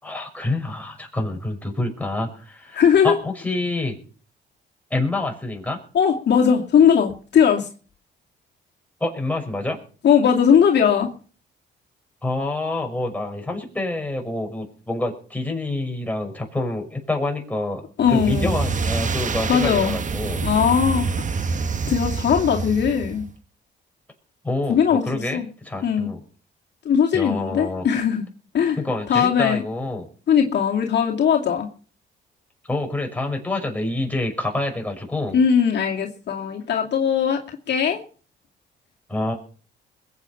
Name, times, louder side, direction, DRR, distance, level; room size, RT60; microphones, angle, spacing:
voice 1, 0.0-4.0 4.9-5.8 9.0-9.8 12.2-17.8 18.1-20.4 24.4-26.2 27.1-27.9 28.8-30.1 32.7-35.4 39.1-39.3, left 2 dB, 5° left, 2 dB, 5.9 m, -27 dB
voice 2, 2.7-3.2 5.9-7.7 10.0-11.1 18.0-18.5 19.5-19.9 20.4-21.1 21.8-23.3 24.7-25.0 25.3-25.5 25.8-26.1 26.8-28.2 28.5-28.8 29.1-29.6 30.3-31.7 35.3-38.0, left 7 dB, 60° left, 0 dB, 2.4 m, -19 dB
sound 1, 18.0-23.3, right 4 dB, 40° right, 1.2 m, -26 dB
21.5 x 8.6 x 5.8 m, 0.41 s
cardioid pair, 90°, 20 cm